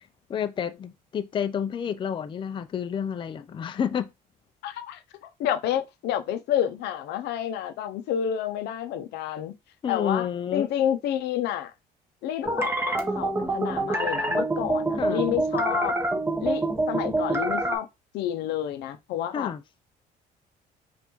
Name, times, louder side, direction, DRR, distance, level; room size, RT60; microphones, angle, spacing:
voice 1, 0.3-4.1 9.8-10.7 15.0-15.2 19.3-19.6, left 8 dB, 30° left, 0.4 m, -29 dB
voice 2, 4.6-9.5 9.9-11.7 12.2-16.0 16.4-17.9 18.1-19.5, left 10 dB, 80° left, 0.6 m, -29 dB
sound 1, 12.4-17.8, right 2 dB, 15° right, 1.0 m, -26 dB
5.2 x 2.5 x 3.0 m
cardioid pair, 110°, 17 cm